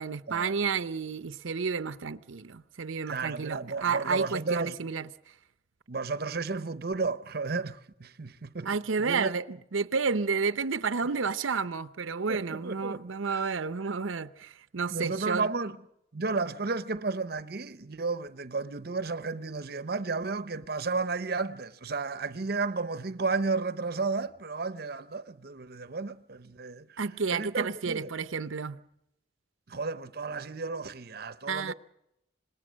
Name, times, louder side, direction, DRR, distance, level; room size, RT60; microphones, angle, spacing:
voice 1, 0.0-5.1 8.6-15.5 27.0-28.8 31.5-31.7, right 5 dB, 85° right, 0.7 m, -31 dB
voice 2, 3.1-4.8 5.9-8.8 9.0-9.3 12.3-13.0 13.3-13.4 14.9-15.8 16.1-27.0 27.3-28.1 29.7-31.7, right 4 dB, 50° right, 0.7 m, -33 dB
26.5 x 20.5 x 6.3 m
head